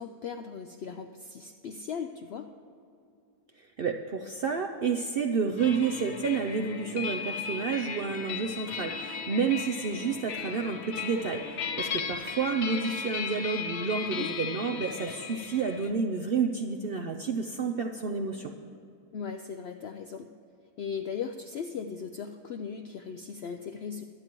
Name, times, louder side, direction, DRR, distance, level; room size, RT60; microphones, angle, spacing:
voice 1, 0.0-2.5 14.0-14.3 19.1-20.3 20.8-24.0, left 6 dB, 75° left, 6 dB, 0.6 m, -38 dB
voice 2, 3.6-18.5, right 5 dB, 65° right, 4 dB, 0.5 m, -30 dB
sound 1, 5.6-15.9, left 6 dB, 50° left, 1.0 m, -36 dB
23.5 x 8.9 x 3.0 m, 2.5 s
omnidirectional pair, 1.6 m